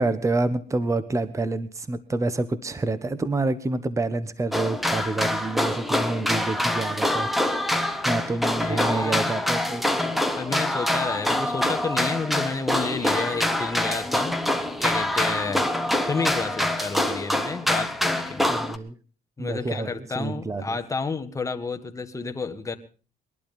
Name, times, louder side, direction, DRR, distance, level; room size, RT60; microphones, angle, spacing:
voice 1, 0.0-9.8 18.5-18.9 19.4-20.8, right 2 dB, 20° right, 14 dB, 1.2 m, -28 dB
sound 1, 4.5-18.8, left 1 dB, ahead, 1.4 m, -25 dB
voice 2, 8.1-9.4 10.4-15.7 16.0-18.5 19.4-22.8, left 4 dB, 20° left, 7 dB, 1.7 m, -31 dB
21.0 x 12.0 x 5.3 m, 0.38 s
cardioid pair, 110°, 17 cm